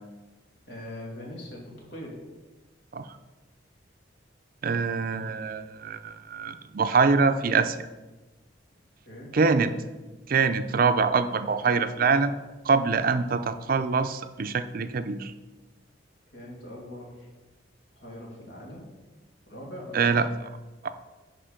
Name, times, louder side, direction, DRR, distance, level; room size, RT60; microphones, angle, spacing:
voice 1, 0.7-2.2 9.0-9.4 16.3-17.3 18.0-18.9 19.5-20.2, left 1 dB, 80° left, -2 dB, 2.6 m, -41 dB
voice 2, 4.6-7.9 9.3-9.7 10.3-12.4 12.6-15.3 19.9-20.3 20.8-20.9, right 4 dB, 50° right, 11 dB, 0.5 m, -24 dB
10.5 x 4.8 x 5.1 m, 1.2 s
head